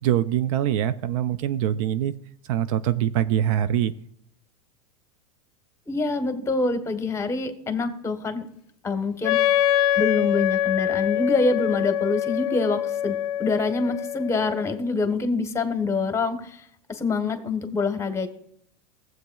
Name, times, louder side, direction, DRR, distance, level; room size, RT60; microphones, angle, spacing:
voice 1, 0.0-2.1 2.5-3.9, right 11 dB, 60° right, 14 dB, 0.5 m, -23 dB
voice 2, 5.9-8.4 8.8-9.6 10.0-16.6 16.9-18.3, left 3 dB, 15° left, 8 dB, 1.2 m, -26 dB
Wind instrument woodwind instrument, 9.2-14.9, left 11 dB, 65° left, 0.4 m, -25 dB
15.5 x 7.7 x 2.3 m, 0.66 s
hypercardioid pair, 100°, 20 cm